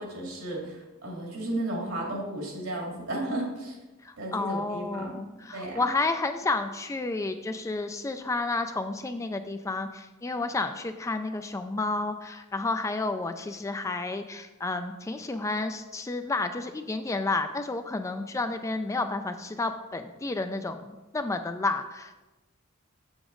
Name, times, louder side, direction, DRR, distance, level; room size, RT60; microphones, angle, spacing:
voice 1, 0.0-3.8 4.2-5.2 5.5-5.9, right 1 dB, 75° right, -1 dB, 2.3 m, -34 dB
voice 2, 4.0-22.1, left 3 dB, 15° left, 8 dB, 0.3 m, -31 dB
7.1 x 7.0 x 3.8 m, 1.1 s
head